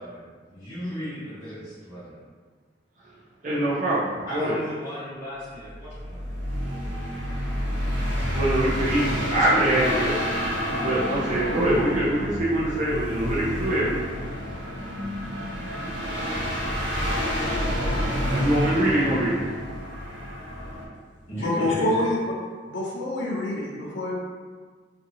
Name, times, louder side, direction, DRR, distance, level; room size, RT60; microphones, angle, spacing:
voice 1, 0.0-2.2 4.3-6.5 21.3-22.1, equal, 20° left, -15 dB, 1.0 m, -35 dB
voice 2, 3.4-4.5 8.3-10.2 10.8-14.0 18.3-19.4, right 1 dB, 45° right, -8 dB, 0.5 m, -24 dB
sound 1, 5.7-20.9, equal, 90° right, 1.1 m, -29 dB
voice 3, 21.4-22.3 22.7-24.1, left 1 dB, 90° left, -4 dB, 0.6 m, -26 dB
2.7 x 2.6 x 2.7 m, 1.5 s
head